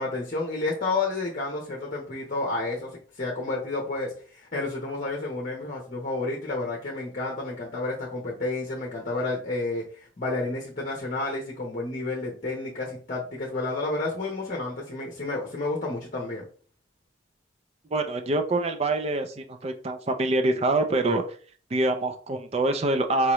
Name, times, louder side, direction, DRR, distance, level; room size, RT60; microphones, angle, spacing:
voice 1, 0.0-16.4, left 2 dB, 40° left, -2 dB, 1.0 m, -30 dB
voice 2, 17.9-21.2 21.7-23.3, right 2 dB, 30° right, 6 dB, 0.4 m, -25 dB
4.8 x 2.9 x 3.1 m, 0.41 s
head